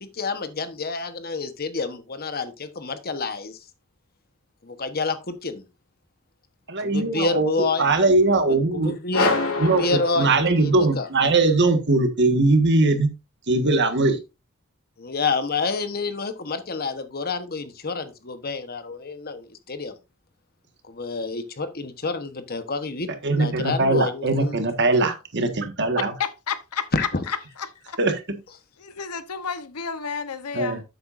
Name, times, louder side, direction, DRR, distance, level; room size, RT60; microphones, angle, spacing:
voice 1, 0.0-3.6 4.6-5.6 6.8-7.9 8.7-10.3 10.6-10.7 11.0-11.1 15.0-19.9 20.9-23.1 23.4-24.6 26.9-27.1, left 3 dB, 45° left, 1.1 m, -28 dB
voice 2, 6.7-9.2 9.6-13.1 13.5-14.2 23.2-26.1 28.0-28.4 30.5-30.8, right 2 dB, 50° right, 1.7 m, -21 dB
sound 1, 9.1-10.9, left 3 dB, 65° left, 2.9 m, -26 dB
voice 3, 26.2-28.0 28.8-30.8, left 6 dB, 90° left, 1.0 m, -31 dB
10.5 x 8.0 x 2.6 m
head